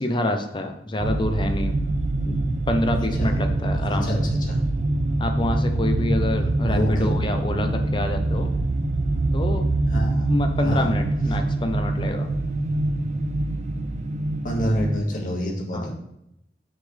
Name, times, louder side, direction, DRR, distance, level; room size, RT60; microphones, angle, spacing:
voice 1, 0.0-1.8 2.2-4.3 5.2-8.5 9.3-9.7 10.3-12.3 15.7-15.9, left 1 dB, 30° left, 6 dB, 0.7 m, -27 dB
sound 1, 1.0-15.0, right 2 dB, 40° right, 0.4 m, -24 dB
voice 2, 3.0-3.3 3.9-4.2 4.4-4.6 6.7-7.1 9.9-10.3 10.6-10.9 14.4-15.9, equal, 50° left, -1 dB, 1.8 m, -27 dB
7.6 x 6.2 x 3.4 m, 0.83 s
head